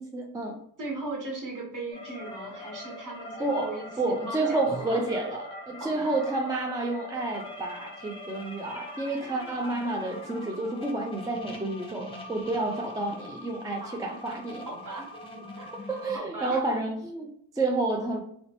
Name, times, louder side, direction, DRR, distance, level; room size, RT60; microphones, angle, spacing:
voice 1, 0.0-0.6 3.4-14.7 15.9-18.2, right 2 dB, 10° right, 0.4 m, -30 dB
voice 2, 0.8-5.1 5.8-6.1 13.8-14.2 14.6-15.1 15.6-16.6, right 2 dB, 45° right, 1.4 m, -38 dB
sound 1, 1.9-16.2, left 1 dB, 15° left, 0.8 m, -43 dB
2.9 x 2.0 x 2.9 m
supercardioid pair, 55°, 42 cm